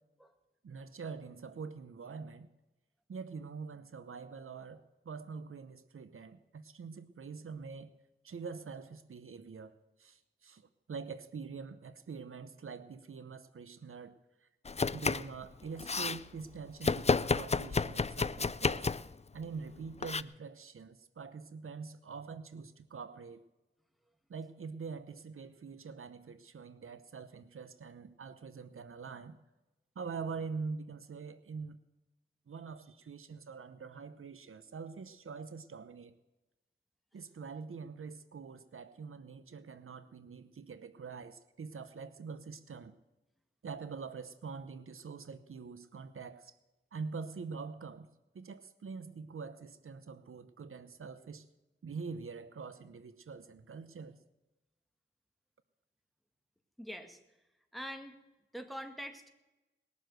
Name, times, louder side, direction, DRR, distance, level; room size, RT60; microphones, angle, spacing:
voice 1, 0.6-2.5 3.1-7.9 8.2-14.2 14.4-14.5 14.9-18.9 19.3-23.4 24.3-29.4 30.0-31.8 32.5-36.1 37.1-43.0 43.6-46.6 46.9-48.1 48.3-51.5 51.8-54.2, right 5 dB, 85° right, 13 dB, 0.8 m, -45 dB
Domestic sounds home sounds, 14.7-15.4 15.6-16.2 16.8-19.1 20.0-20.2, left 4 dB, 30° left, 0.4 m, -31 dB
voice 2, 56.8-57.2 57.7-58.2 58.5-59.3, equal, ahead, 6 dB, 1.9 m, -44 dB
20.0 x 7.1 x 7.8 m, 1.0 s
cardioid pair, 50°, 21 cm